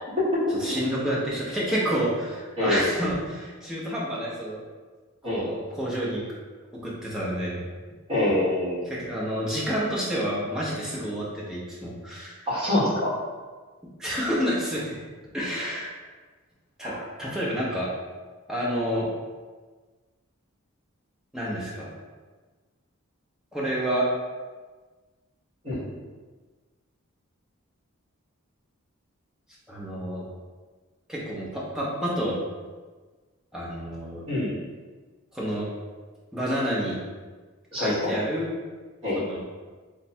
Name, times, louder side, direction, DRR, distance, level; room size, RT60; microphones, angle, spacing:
voice 1, 0.5-4.6 5.2-6.2 6.8-7.6 8.8-12.5 14.0-15.0 15.3-16.0 16.8-17.9 18.5-19.1 21.3-21.9 23.5-24.1 29.7-30.2 31.1-32.4 33.5-34.3 35.3-35.7 36.3-37.0 37.8-38.5 39.2-39.4, equal, 5° right, -6 dB, 0.7 m, -29 dB
voice 2, 8.1-8.8 12.5-13.1 16.8-17.0 25.6-25.9 34.3-34.5 37.7-38.1 39.0-39.2, left 1 dB, 25° right, -11 dB, 1.5 m, -25 dB
3.2 x 2.2 x 4.2 m, 1.4 s
head